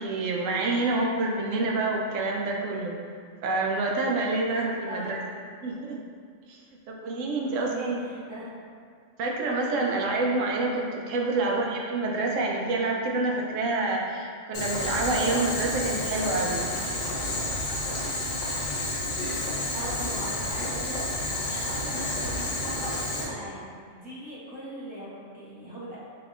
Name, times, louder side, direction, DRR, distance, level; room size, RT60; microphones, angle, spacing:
voice 1, 0.0-3.0 3.4-5.2 5.6-6.0 6.5-6.6 7.0-8.0 9.2-16.7, right 2 dB, 90° right, 0 dB, 0.9 m, -27 dB
voice 2, 7.4-8.5 11.3-11.6 19.7-26.0, right 1 dB, 10° right, -10 dB, 0.8 m, -40 dB
Boiling, 14.5-23.2, left 1 dB, 75° left, 1.1 m, -30 dB
4.0 x 2.8 x 2.5 m, 2.1 s
omnidirectional pair, 1.3 m